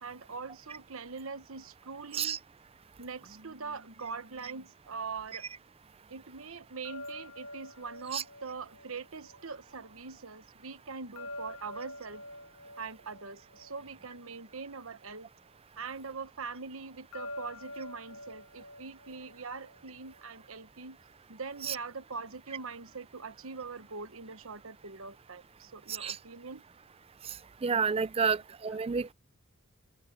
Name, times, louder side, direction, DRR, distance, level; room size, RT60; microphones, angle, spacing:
voice 1, 0.0-2.4 3.0-5.5 6.1-12.2 12.8-15.3 15.8-21.0 21.3-26.6 28.2-28.3, right 4 dB, 75° right, 1.2 m, -42 dB
sound 1, 6.8-9.9 11.2-14.7 17.1-20.2, left 1 dB, 80° left, 1.2 m, -47 dB
voice 2, 27.6-29.1, right 5 dB, 30° right, 0.4 m, -30 dB
open air
head